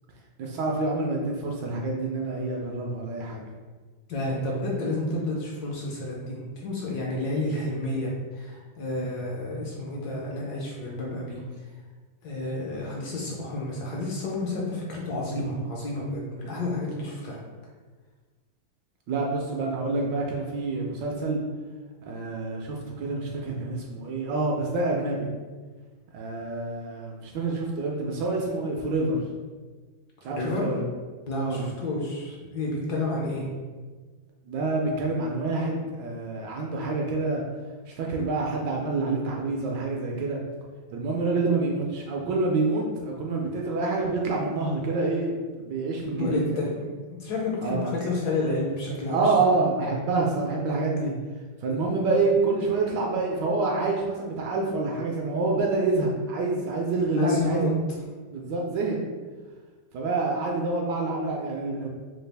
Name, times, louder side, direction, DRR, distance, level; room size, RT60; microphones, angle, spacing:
voice 1, 0.4-3.4 19.1-21.4 22.1-25.3 26.1-29.2 30.2-30.8 31.3-31.7 34.5-37.4 37.9-40.4 40.9-46.7 47.6-47.9 49.1-51.1 51.6-57.7 58.3-59.0 59.9-61.9, right 3 dB, 75° right, -1 dB, 1.1 m, -27 dB
voice 2, 4.1-11.4 12.2-17.4 30.3-30.7 31.3-33.5 46.2-49.3 57.1-57.7, left 2 dB, 65° left, -3 dB, 1.1 m, -30 dB
4.0 x 2.4 x 3.3 m, 1.4 s
omnidirectional pair, 2.1 m